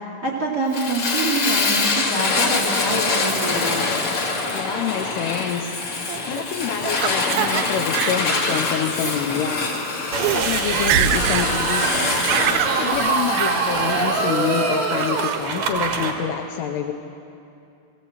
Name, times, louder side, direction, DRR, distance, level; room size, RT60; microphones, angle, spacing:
voice 1, 0.2-3.9, right 2 dB, 35° right, -2 dB, 1.6 m, -25 dB
Fire, 0.7-15.3, left 3 dB, 45° left, 2.0 m, -25 dB
voice 2, 4.4-9.7 10.2-12.2 12.6-16.9, left 8 dB, 80° left, 3 dB, 2.5 m, -27 dB
Laughter, 6.1-7.6 7.9-8.6 9.0-9.2 9.8-9.9 10.1-10.4 10.7-11.5 11.8-12.8 13.4-13.6 14.0-14.5 14.9-15.4, right 13 dB, 90° right, 3.2 m, -25 dB
sound 1, 10.1-16.1, right 5 dB, 70° right, 1.7 m, -23 dB
20.0 x 16.5 x 8.0 m, 2.7 s
omnidirectional pair, 5.6 m